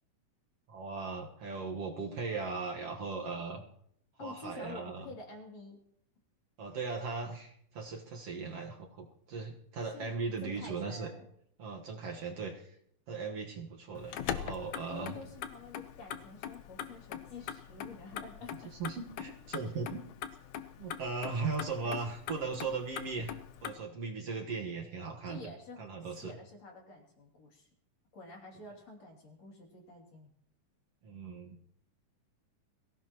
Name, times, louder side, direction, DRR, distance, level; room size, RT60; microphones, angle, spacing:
voice 1, 0.7-3.7 4.2-5.0 6.6-11.1 11.6-12.8 13.1-15.2 18.8-20.0 20.8-23.3 23.6-25.5 25.8-26.4 31.0-31.6, right 4 dB, 55° right, 1 dB, 2.2 m, -38 dB
voice 2, 4.2-5.8 9.9-10.1 10.4-11.3 14.9-18.7 21.8-22.1 25.3-27.7 28.1-30.3, left 3 dB, 55° left, 1 dB, 3.9 m, -49 dB
Motor vehicle (road), 13.9-23.7, left 9 dB, 75° left, 2.3 m, -42 dB
23.0 x 16.5 x 3.0 m, 0.67 s
omnidirectional pair, 3.6 m